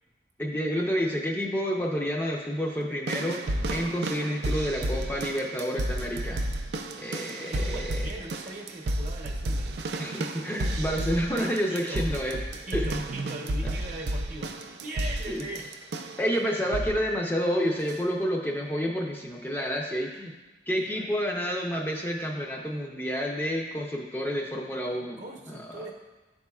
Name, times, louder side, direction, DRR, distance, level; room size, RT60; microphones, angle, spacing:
voice 1, 0.4-6.4 7.0-8.0 10.0-12.4 12.7-13.1 13.6-13.7 15.3-15.5 16.2-20.3 20.7-25.2, equal, 10° left, -1 dB, 0.5 m, -29 dB
sound 1, 3.1-16.3 16.7-17.1 17.9-18.0, right 1 dB, 75° right, 0.4 m, -32 dB
voice 2, 7.5-10.2 11.7-15.7 16.0-16.2 16.6-16.7 20.8-21.1 25.2-25.9, right 1 dB, 45° right, 0 dB, 0.8 m, -41 dB
11.0 x 4.2 x 2.3 m, 1.2 s
head